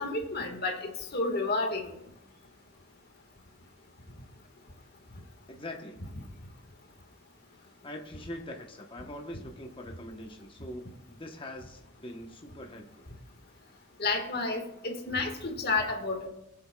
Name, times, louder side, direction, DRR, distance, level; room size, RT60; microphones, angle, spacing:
voice 1, 0.0-1.8 14.0-16.3, left 3 dB, 55° left, 3 dB, 1.6 m, -30 dB
voice 2, 5.5-6.0 7.6-13.1, left 1 dB, 25° left, 2 dB, 1.0 m, -43 dB
20.5 x 7.7 x 2.3 m, 0.83 s
head